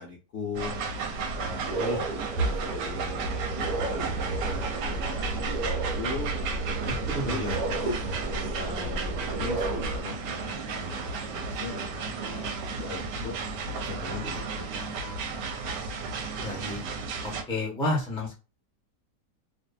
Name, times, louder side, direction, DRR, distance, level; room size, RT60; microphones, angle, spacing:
voice 1, 0.0-1.6 2.2-8.0 8.6-12.5 12.8-13.4 13.8-15.0 15.3-15.5, left 4 dB, 55° left, -3 dB, 0.7 m, -40 dB
sound 1, 0.5-17.4, right 4 dB, 85° right, 1.2 m, -34 dB
sound 2, 0.6-0.7 1.2-10.0, right 2 dB, 65° right, 1.1 m, -32 dB
voice 2, 1.5-2.0 6.8-7.6 16.4-16.8 17.2-18.4, left 2 dB, 5° left, -2 dB, 0.6 m, -31 dB
2.7 x 2.6 x 2.3 m, 0.30 s
omnidirectional pair, 1.8 m